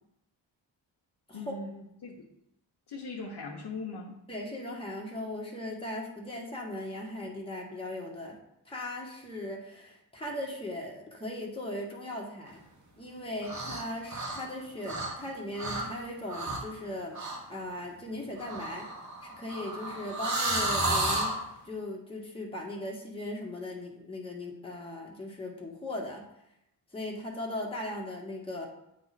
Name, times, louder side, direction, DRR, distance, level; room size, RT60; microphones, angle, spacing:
voice 1, 1.3-2.2 2.9-4.2, left 3 dB, 55° left, -3 dB, 1.1 m, -40 dB
voice 2, 4.3-8.4 8.7-12.6 13.0-17.2 17.5-18.9 19.2-21.3 21.7-26.3 26.9-28.7, left 1 dB, 10° left, -2 dB, 1.6 m, -38 dB
sound 1, 13.4-13.8 14.1-15.3 15.6-15.9 16.3-16.7 17.1-17.4 18.4-21.4, right 1 dB, 40° right, 1.4 m, -32 dB
8.5 x 3.0 x 4.2 m, 0.82 s
cardioid pair, 50°, 46 cm